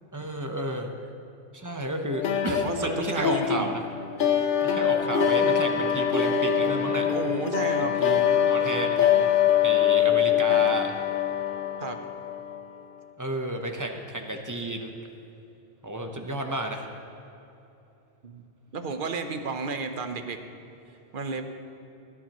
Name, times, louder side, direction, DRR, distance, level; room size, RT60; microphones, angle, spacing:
voice 1, 0.1-0.9 1.5-3.8 4.6-7.1 7.8-9.3 9.6-10.9 13.2-14.9 15.8-16.9, right 1 dB, 20° right, 3 dB, 0.9 m, -32 dB
sound 1, 2.1-12.6, left 9 dB, 55° left, 0.8 m, -24 dB
voice 2, 2.5-3.7 7.1-8.0 11.8-12.0 18.2-18.4 18.7-20.4 21.1-21.4, right 4 dB, 55° right, 7 dB, 1.0 m, -32 dB
17.0 x 10.5 x 3.0 m, 2.9 s
omnidirectional pair, 1.1 m